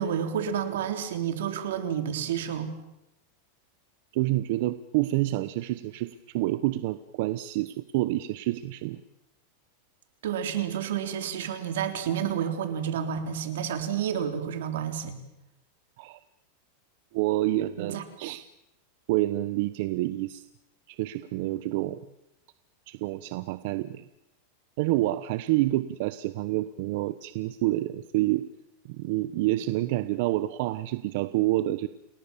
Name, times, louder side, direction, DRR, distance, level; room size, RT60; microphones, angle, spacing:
voice 1, 0.0-2.7 10.2-15.1 17.8-18.0, right 8 dB, 80° right, 8 dB, 3.7 m, -30 dB
voice 2, 4.1-9.0 16.0-16.2 17.1-18.4 19.1-20.4 20.9-22.0 22.9-24.0 24.8-28.5 28.9-31.9, right 17 dB, 55° right, 13 dB, 0.9 m, -28 dB
29.5 x 20.5 x 7.3 m, 0.86 s
supercardioid pair, 155°, 0 cm